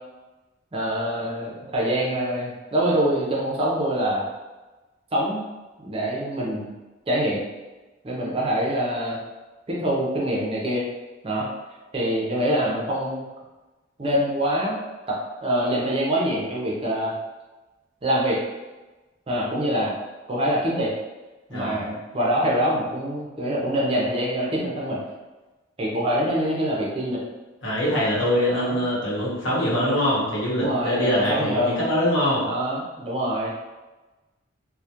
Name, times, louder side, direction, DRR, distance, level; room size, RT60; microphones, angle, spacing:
voice 1, 0.7-4.3 5.1-5.4 5.8-6.7 7.1-7.4 8.0-9.2 9.7-10.8 11.2-11.5 11.9-13.2 14.0-14.8 15.1-17.1 18.0-18.4 19.3-19.9 20.3-20.9 21.5-25.0 25.8-27.2 28.5-28.8 30.6-31.8 32.4-33.5, equal, 30° right, -3 dB, 0.5 m, -25 dB
voice 2, 21.5-21.8 27.6-32.4, equal, 70° left, -7 dB, 0.9 m, -23 dB
2.3 x 2.1 x 2.8 m, 1.2 s
head